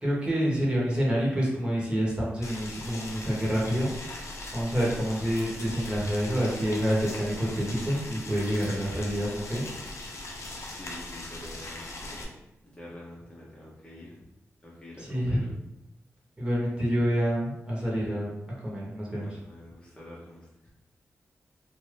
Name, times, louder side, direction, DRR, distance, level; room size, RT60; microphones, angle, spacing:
voice 1, 0.0-3.9 4.5-9.6 15.0-15.4 16.4-18.3 18.6-19.4, equal, 20° right, -5 dB, 1.3 m, -27 dB
Boiling, 2.4-12.2, left 2 dB, 65° left, 0.7 m, -40 dB
voice 2, 10.6-12.3 12.7-14.2 14.6-15.5 19.1-20.7, left 1 dB, 20° left, -6 dB, 0.9 m, -47 dB
2.6 x 2.5 x 3.3 m, 0.87 s
cardioid pair, 55°, 5 cm